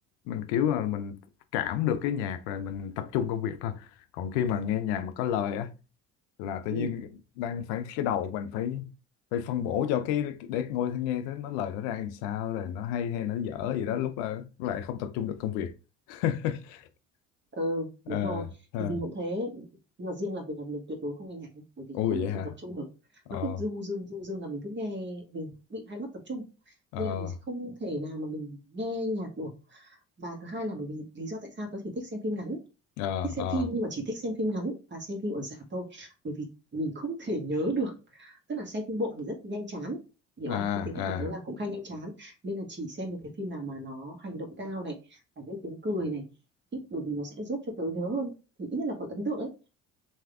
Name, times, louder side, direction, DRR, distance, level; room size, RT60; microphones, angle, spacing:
voice 1, 0.3-1.2 1.5-3.9 4.1-5.7 6.4-7.1 7.4-8.9 9.3-15.7 16.1-16.9 18.1-18.5 18.7-18.9 21.9-22.5 23.3-23.6 26.9-27.3 33.0-33.6 40.4-41.3, left 10 dB, 85° left, 0.5 m, -30 dB
voice 2, 17.5-18.4 18.8-19.7 20.0-21.8 22.1-22.3 22.6-22.9 23.3-32.6 33.2-40.0 40.4-46.3 46.7-48.3 48.6-49.5, equal, 35° right, 1.5 m, -34 dB
3.4 x 2.8 x 3.4 m
supercardioid pair, 65°, 34 cm